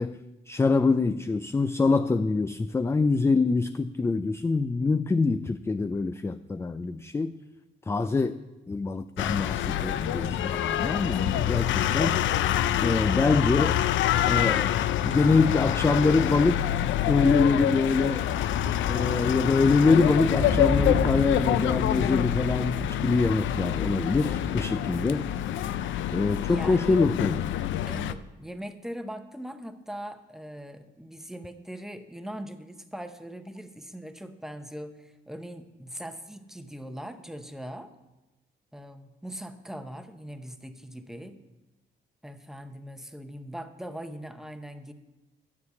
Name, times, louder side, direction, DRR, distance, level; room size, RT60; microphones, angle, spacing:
voice 1, 0.0-7.4 7.9-8.4 8.7-12.2 12.8-13.8 14.2-16.8 17.1-18.3 18.9-25.3 26.1-27.4, left 3 dB, 15° left, 11 dB, 0.3 m, -25 dB
sound 1, 9.2-28.1, left 11 dB, 75° left, 0.5 m, -26 dB
voice 2, 9.8-10.1 22.4-22.5 26.5-27.0 27.9-37.9 38.7-41.4 42.2-44.9, equal, ahead, 9 dB, 0.8 m, -41 dB
sound 2, 17.8-25.3, left 3 dB, 60° left, 1.7 m, -38 dB
sound 3, 20.1-22.4, left 1 dB, 35° left, 2.0 m, -32 dB
9.7 x 6.4 x 6.9 m, 1.1 s
cardioid pair, 90°, 20 cm